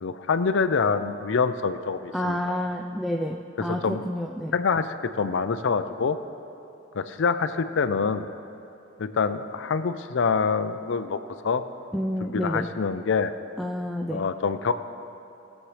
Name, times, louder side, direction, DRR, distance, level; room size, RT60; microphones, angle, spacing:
voice 1, 0.0-2.6 3.6-4.1 4.5-6.2 6.9-8.3 9.0-11.2 11.4-11.6 12.2-13.3 14.1-14.7, left 5 dB, 70° left, 10 dB, 0.5 m, -26 dB
voice 2, 2.1-4.5 11.9-12.7 13.6-14.2, equal, ahead, 1 dB, 0.3 m, -29 dB
19.0 x 7.4 x 3.3 m, 2.8 s
head